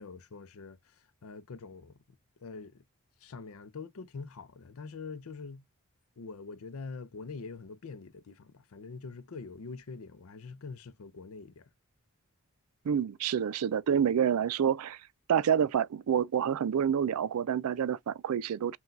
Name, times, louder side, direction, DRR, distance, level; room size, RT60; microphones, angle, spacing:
voice 1, 0.0-2.8 3.2-5.6 6.2-11.7, left 4 dB, 70° left, 0.5 m, -44 dB
voice 2, 12.8-15.0 15.3-18.8, right 8 dB, 80° right, 0.4 m, -28 dB
5.8 x 2.3 x 2.6 m
head